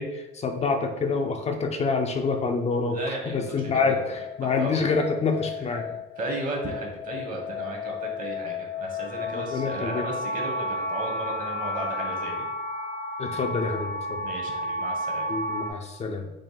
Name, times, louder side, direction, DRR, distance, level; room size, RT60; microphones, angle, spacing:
voice 1, 0.0-3.0 3.3-5.9 9.3-10.0 13.2-14.2 15.3-16.3, left 4 dB, 35° left, 4 dB, 0.5 m, -27 dB
sound 1, 2.9-15.7, left 2 dB, 85° left, 0.8 m, -33 dB
voice 2, 2.9-4.9 5.8-5.9 6.2-12.5 13.2-13.3 14.2-15.3, right 2 dB, 45° right, 1 dB, 1.1 m, -35 dB
3.7 x 2.3 x 3.9 m, 1.0 s
supercardioid pair, 85°, 19 cm